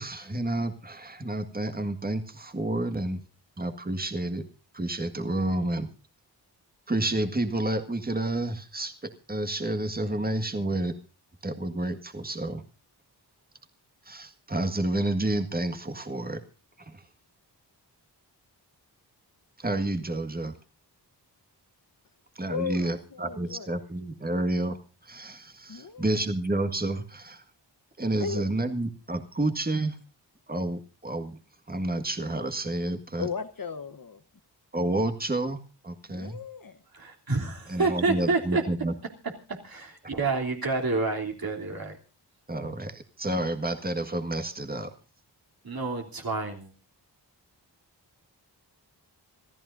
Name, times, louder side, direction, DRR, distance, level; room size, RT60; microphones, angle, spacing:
voice 1, 0.0-3.2 3.6-4.4 4.7-5.9 6.9-10.9 11.4-12.6 14.1-16.4 16.9-17.0 19.6-20.5 22.3-24.8 25.0-27.4 28.0-30.0 30.5-31.4 31.7-33.3 34.7-36.4 37.7-38.9 42.5-44.9, right 1 dB, 20° right, 7 dB, 1.7 m, -30 dB
voice 2, 22.5-23.7 25.7-26.1 28.2-28.5 33.2-34.2 36.1-36.8, left 6 dB, 55° left, 11 dB, 1.1 m, -36 dB
voice 3, 36.9-38.6 39.5-42.0 45.6-46.7, right 3 dB, 55° right, 1 dB, 3.2 m, -28 dB
27.0 x 14.0 x 2.6 m, 0.35 s
wide cardioid pair, 85°, 42 cm